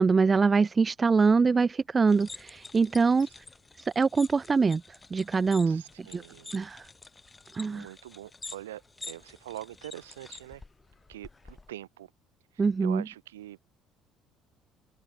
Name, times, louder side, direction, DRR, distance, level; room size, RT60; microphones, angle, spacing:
voice 1, 0.0-3.3 4.0-4.8 5.1-6.2 6.5-6.9 7.5-7.9 12.6-13.0, right 4 dB, 25° right, 0.3 m, -24 dB
sound 1, 2.1-11.7, left 3 dB, 20° left, 5.1 m, -48 dB
voice 2, 5.7-6.7 7.7-10.6 11.1-12.1 12.5-13.6, right 14 dB, 75° right, 4.2 m, -44 dB
figure-of-eight pair, 55°, 0 cm